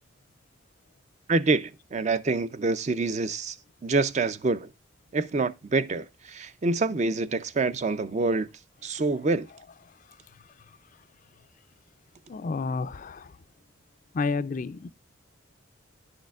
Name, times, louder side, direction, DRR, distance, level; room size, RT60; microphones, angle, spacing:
voice 1, 1.3-3.6 3.8-4.7 5.1-8.5 8.8-9.5, right 3 dB, 35° right, 0.4 m, -26 dB
voice 2, 12.3-13.4 14.1-14.9, left 4 dB, 40° left, 0.3 m, -30 dB
10.0 x 6.5 x 2.3 m
head